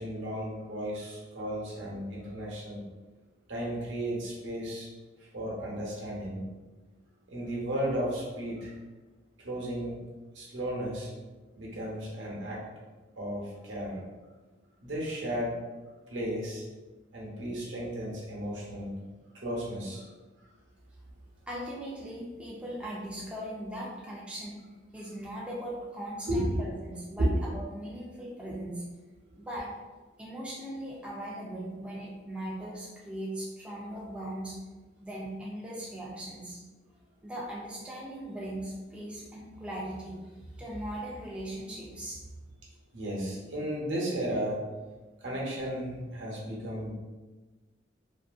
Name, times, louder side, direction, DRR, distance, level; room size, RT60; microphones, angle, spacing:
voice 1, 0.0-2.8 3.5-4.9 5.2-6.4 7.3-8.7 9.4-10.0 10.3-11.1 11.5-12.6 13.2-14.0 14.8-15.6 16.1-16.6 17.1-18.9 19.3-20.0 26.3-26.6 42.9-44.6 45.2-46.9, equal, 75° right, -4 dB, 0.8 m, -34 dB
voice 2, 21.5-24.6 24.9-28.8 29.4-29.7 30.2-34.6 35.0-36.6 37.2-42.2, right 1 dB, 5° right, -5 dB, 0.4 m, -39 dB
2.6 x 2.5 x 2.4 m, 1.2 s
head